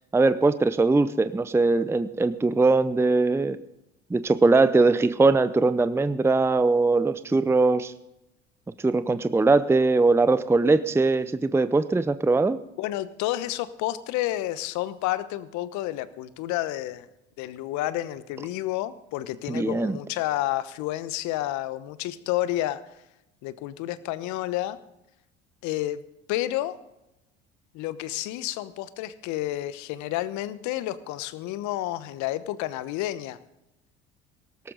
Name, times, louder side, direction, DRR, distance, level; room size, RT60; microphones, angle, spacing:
voice 1, 0.1-3.6 4.1-7.9 8.8-12.6 19.5-20.0, right 3 dB, 10° right, 13 dB, 0.6 m, -21 dB
voice 2, 12.8-17.1 17.4-22.8 23.4-24.8 25.6-26.0 26.3-26.8 27.7-33.4, left 14 dB, 60° left, 15 dB, 1.0 m, -30 dB
18.0 x 14.0 x 3.9 m, 0.89 s
hypercardioid pair, 65°, 33 cm